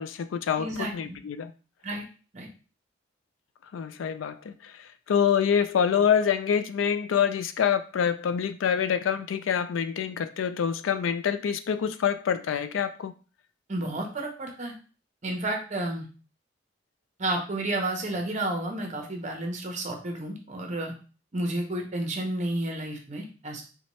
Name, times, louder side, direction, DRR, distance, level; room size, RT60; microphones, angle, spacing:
voice 1, 0.0-1.5 3.7-13.1, left 7 dB, 85° left, 11 dB, 0.4 m, -26 dB
voice 2, 0.6-1.2 1.8-2.0 2.3-2.5 13.7-14.7 15.2-16.1 17.2-20.9 21.3-23.6, right 1 dB, 40° right, 3 dB, 0.8 m, -31 dB
4.1 x 2.2 x 3.0 m, 0.36 s
head